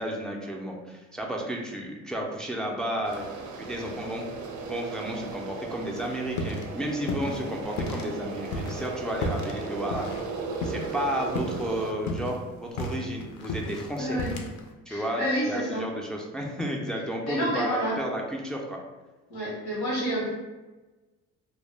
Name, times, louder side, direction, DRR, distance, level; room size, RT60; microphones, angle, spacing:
voice 1, 0.0-3.2 3.6-4.2 4.6-10.3 10.6-14.2 14.9-18.8, equal, ahead, 0 dB, 0.3 m, -32 dB
sound 1, 3.0-11.9, right 4 dB, 75° right, 0.4 m, -37 dB
sound 2, 6.0-6.7 7.0-8.1 8.4-11.0 11.3-11.6 11.9-14.7, left 2 dB, 70° left, 0.5 m, -33 dB
voice 2, 13.9-14.3 14.9-15.8 17.2-17.9 19.3-20.3, equal, 90° left, -7 dB, 0.8 m, -29 dB
2.1 x 2.0 x 3.1 m, 1.2 s
cardioid pair, 90°, 30 cm